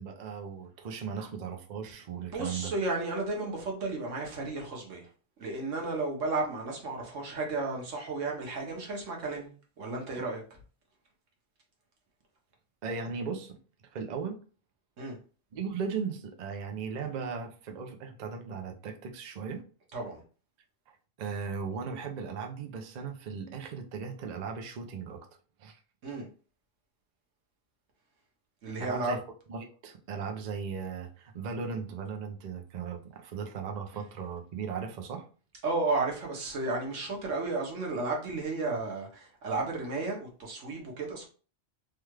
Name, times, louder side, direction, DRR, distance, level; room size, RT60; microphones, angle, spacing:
voice 1, 0.0-2.7 12.8-13.6 13.8-14.4 15.5-19.6 21.2-25.3 25.6-25.8 28.8-29.2 29.5-35.3, right 5 dB, 50° right, 0.5 m, -37 dB
voice 2, 2.1-5.1 5.4-9.5 9.8-10.4 15.0-15.2 19.9-20.2 26.0-26.3 28.6-29.2 35.6-41.3, right 3 dB, 85° right, 1.4 m, -33 dB
3.3 x 2.3 x 3.1 m
omnidirectional pair, 1.3 m